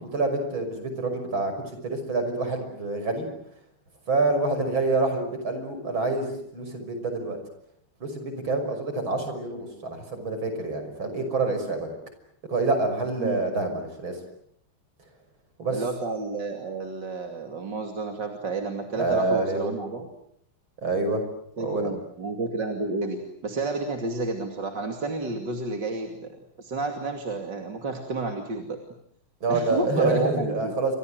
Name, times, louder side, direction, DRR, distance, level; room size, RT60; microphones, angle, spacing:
voice 1, 0.1-3.3 4.1-7.4 8.0-11.9 12.5-14.2 15.6-15.8 19.0-19.7 20.8-21.2 21.6-21.9 29.4-31.0, right 3 dB, 75° right, 7 dB, 6.8 m, -27 dB
voice 2, 15.7-20.1 21.6-26.3 26.6-28.8 29.5-30.8, right 3 dB, 60° right, 4 dB, 3.2 m, -31 dB
29.5 x 25.5 x 7.8 m, 0.69 s
omnidirectional pair, 2.2 m